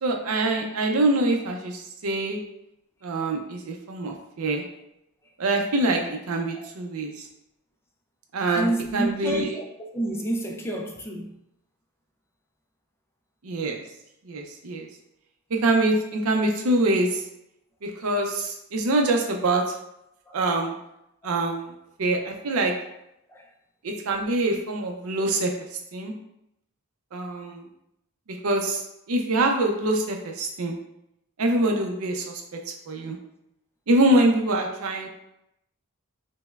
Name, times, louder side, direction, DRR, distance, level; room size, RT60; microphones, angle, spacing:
voice 1, 0.0-2.4 3.0-4.6 5.4-7.3 8.3-8.7 8.9-9.5 13.4-13.8 14.3-14.9 15.5-17.2 17.8-19.6 20.3-20.7 21.2-21.7 22.0-22.7 23.8-25.5 25.9-26.1 27.1-27.7 28.3-28.8 29.1-30.8 31.4-32.6 32.9-33.2 33.9-35.1, right 2 dB, 75° right, 0.5 m, -24 dB
voice 2, 8.5-11.4 20.3-20.4 21.2-21.4 23.3-23.5, right 2 dB, 10° left, 0.3 m, -29 dB
5.2 x 2.1 x 2.3 m
head